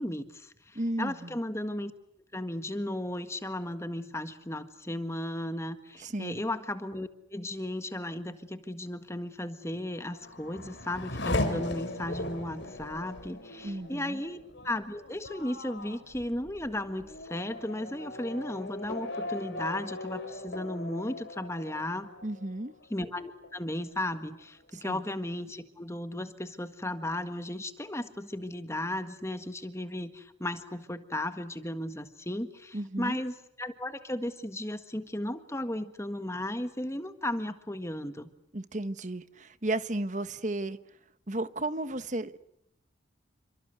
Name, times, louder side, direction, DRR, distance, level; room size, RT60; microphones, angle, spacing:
voice 1, 0.0-1.9 2.3-14.4 14.6-22.1 22.9-38.3, left 1 dB, 15° left, 1.6 m, -35 dB
voice 2, 0.7-1.3 6.0-6.4 13.6-14.2 22.2-22.7 24.7-25.0 32.7-33.2 38.5-40.8 41.3-42.4, right 1 dB, 40° right, 1.4 m, -34 dB
Race car auto racing / Accelerating revving vroom, 9.8-23.0 23.4-24.1, left 2 dB, 65° left, 3.7 m, -38 dB
29.5 x 25.0 x 8.1 m
head